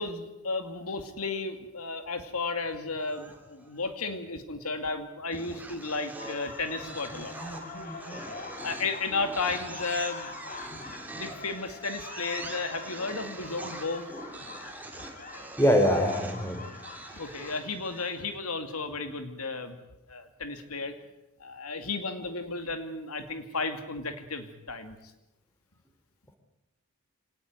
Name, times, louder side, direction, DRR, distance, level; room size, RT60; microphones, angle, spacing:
voice 1, 0.0-7.3 8.6-10.3 11.1-14.1 17.1-19.8 20.1-20.9 21.4-25.0, left 3 dB, 85° left, 8 dB, 2.5 m, -33 dB
sound 1, 3.0-3.8 5.3-18.3, right 2 dB, 5° right, 2.9 m, -44 dB
sound 2, 6.2-18.2, left 3 dB, 40° left, 3.8 m, -44 dB
voice 2, 15.6-16.6, equal, 10° left, 5 dB, 3.7 m, -23 dB
25.5 x 18.5 x 9.6 m, 0.94 s
head